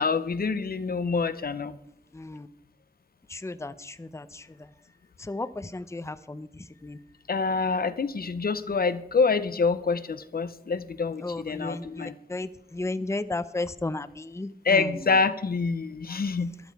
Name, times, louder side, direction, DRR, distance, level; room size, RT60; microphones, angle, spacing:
voice 1, 0.0-1.7 7.3-12.1 14.6-16.5, left 4 dB, 65° left, 13 dB, 0.7 m, -26 dB
voice 2, 2.1-2.5 3.3-4.5 5.2-7.0 11.2-15.1 16.1-16.2, left 2 dB, 15° left, 13 dB, 0.6 m, -34 dB
13.5 x 11.5 x 4.7 m, 0.73 s
wide cardioid pair, 70°, 17 cm